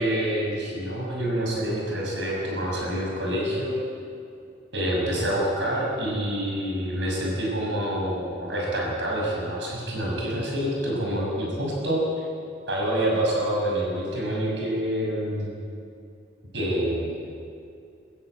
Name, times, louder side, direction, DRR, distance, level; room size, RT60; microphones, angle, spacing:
voice 1, 0.0-3.8 4.7-12.3 12.7-15.5 16.5-17.3, equal, 65° right, -3 dB, 6.5 m, -27 dB
23.5 x 13.0 x 9.4 m, 2.5 s
head